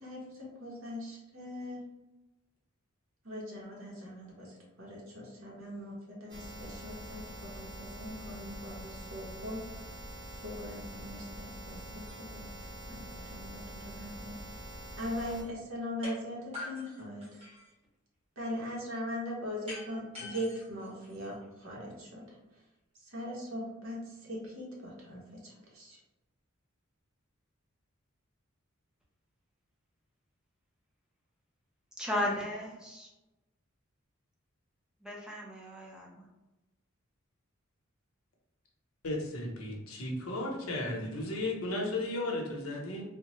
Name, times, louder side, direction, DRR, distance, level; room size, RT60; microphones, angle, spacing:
voice 1, 0.0-1.9 3.2-4.5 4.8-7.2 7.5-9.6 10.4-12.5 12.9-14.3 15.0-17.3 18.4-21.3 21.6-22.2 23.1-25.2 25.7-26.0, left 1 dB, 70° right, -3 dB, 1.0 m, -40 dB
sound 1, 6.3-15.4, right 1 dB, 50° right, 1.1 m, -45 dB
sound 2, 16.0-16.2 16.5-17.7 19.7-21.7, left 1 dB, 30° right, 1.0 m, -44 dB
voice 2, 32.0-33.1 35.0-36.3, left 1 dB, 5° right, -2 dB, 0.5 m, -35 dB
voice 3, 39.0-43.0, left 2 dB, 80° left, 0 dB, 0.8 m, -34 dB
3.4 x 2.1 x 3.0 m, 1.0 s
head